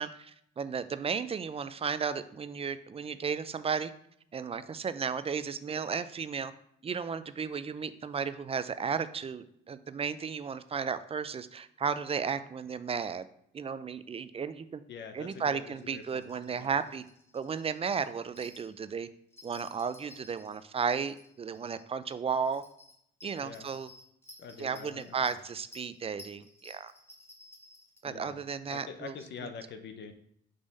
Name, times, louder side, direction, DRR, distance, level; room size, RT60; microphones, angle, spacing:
voice 1, 0.0-3.9 4.3-6.5 6.8-13.3 13.5-14.8 15.1-17.0 17.3-19.1 19.4-22.6 23.2-23.9 24.6-26.9 28.0-29.1, right 6 dB, 30° right, 13 dB, 0.4 m, -34 dB
voice 2, 14.9-16.3 16.6-16.7 23.4-23.7 24.4-25.4 28.1-28.4 28.7-30.1, left 6 dB, 65° left, 7 dB, 0.8 m, -45 dB
sound 1, 15.6-18.8 19.3-20.6 20.9-21.8 22.1-22.2 22.5-28.0, left 2 dB, 10° left, 1.2 m, -55 dB
5.2 x 3.4 x 5.3 m, 0.70 s
cardioid pair, 90°, 20 cm